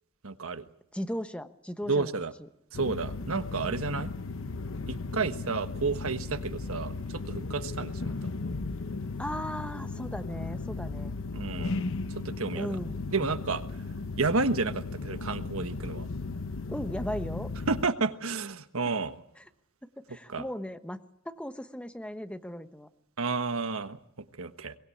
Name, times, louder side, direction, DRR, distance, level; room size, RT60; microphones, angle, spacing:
voice 1, 0.2-0.7 1.9-2.3 2.7-4.1 4.9-8.3 11.3-11.8 12.1-12.8 13.1-13.9 14.2-16.1 17.7-19.2 20.3-20.5 23.2-24.8, right 4 dB, 70° right, 10 dB, 1.4 m, -31 dB
voice 2, 0.9-2.2 9.2-11.2 12.5-13.0 16.7-17.5 19.8-22.9, equal, 5° left, 9 dB, 1.2 m, -37 dB
sound 1, 2.7-17.9, left 3 dB, 65° left, 1.0 m, -36 dB
22.5 x 20.0 x 8.6 m, 0.75 s
head